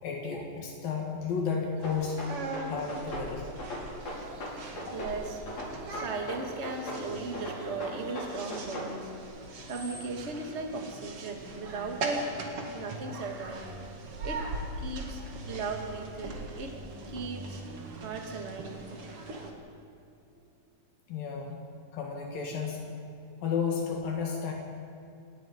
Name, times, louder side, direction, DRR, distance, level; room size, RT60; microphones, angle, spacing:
voice 1, 0.0-2.2 2.7-3.4 4.8-4.9 21.1-21.6 21.9-22.8 23.4-24.5, left 6 dB, 80° left, 0 dB, 3.7 m, -32 dB
sound 1, 1.8-3.3 3.6-5.2 5.5-7.0 7.3-8.9, equal, 55° left, 7.4 m, -38 dB
sound 2, 1.8-19.5, right 2 dB, 45° right, 2.7 m, -41 dB
voice 2, 4.0-9.1 9.7-12.3 12.6-13.6 14.2-14.4 14.8-16.8 17.1-17.6 17.9-18.8, right 3 dB, 25° right, 2 dB, 1.8 m, -37 dB
29.5 x 18.0 x 5.4 m, 2.6 s
omnidirectional pair, 4.0 m